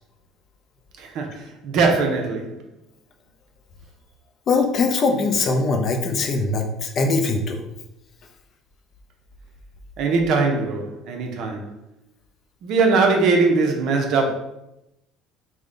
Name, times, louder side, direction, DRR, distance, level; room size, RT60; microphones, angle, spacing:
voice 1, 1.0-2.5 10.0-11.7 12.6-14.3, right 4 dB, 55° right, 3 dB, 0.6 m, -21 dB
voice 2, 4.5-7.6, left 3 dB, 40° left, 4 dB, 0.4 m, -21 dB
3.6 x 2.1 x 3.7 m, 0.89 s
cardioid pair, 150°, 0 cm